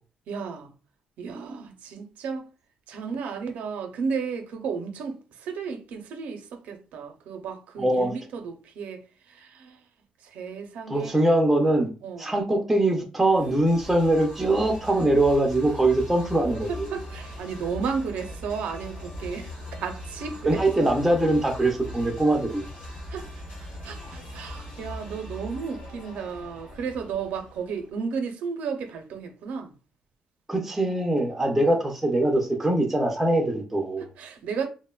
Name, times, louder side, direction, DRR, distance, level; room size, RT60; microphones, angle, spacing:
voice 1, 0.3-0.7 1.2-2.5 2.9-9.0 9.3-9.8 10.2-11.2 12.0-12.4 16.7-20.9 23.1-23.3 23.8-29.7 34.2-34.7, right 5 dB, 80° right, 0.5 m, -33 dB
voice 2, 7.8-8.1 10.9-11.9 12.2-16.9 20.5-22.7 30.5-34.1, right 1 dB, 5° right, 0.4 m, -22 dB
sound 1, 13.3-28.0, equal, 85° left, 1.3 m, -40 dB
2.9 x 2.1 x 2.2 m
cardioid pair, 165°, 3 cm